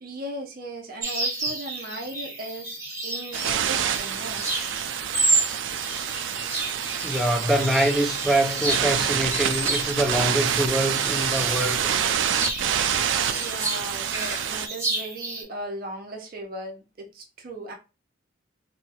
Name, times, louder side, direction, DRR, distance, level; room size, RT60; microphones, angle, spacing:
voice 1, 0.0-4.4 13.2-17.7, right 1 dB, 50° right, 0.7 m, -37 dB
birds singing in the garden, 1.0-15.4, right 3 dB, 15° right, 1.0 m, -31 dB
sound 1, 3.3-14.7, right 9 dB, 75° right, 0.3 m, -27 dB
voice 2, 7.0-11.9, right 1 dB, ahead, 0.4 m, -24 dB
2.7 x 2.3 x 2.8 m
head